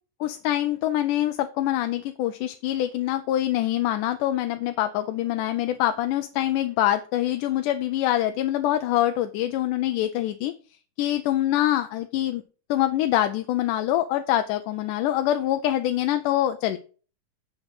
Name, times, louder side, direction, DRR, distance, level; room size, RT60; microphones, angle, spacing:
voice 1, 0.2-10.5 11.0-12.4 12.7-16.8, left 13 dB, 85° left, 8 dB, 2.2 m, -25 dB
8.9 x 6.0 x 7.7 m, 0.38 s
omnidirectional pair, 3.6 m